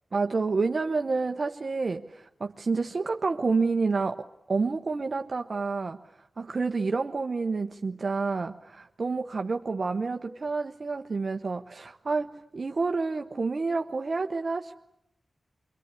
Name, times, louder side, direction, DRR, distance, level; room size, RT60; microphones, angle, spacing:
voice 1, 0.1-6.0 6.4-14.9, right 4 dB, 50° right, 5 dB, 1.1 m, -29 dB
25.5 x 23.5 x 10.0 m, 0.82 s
wide cardioid pair, 75°, 0 cm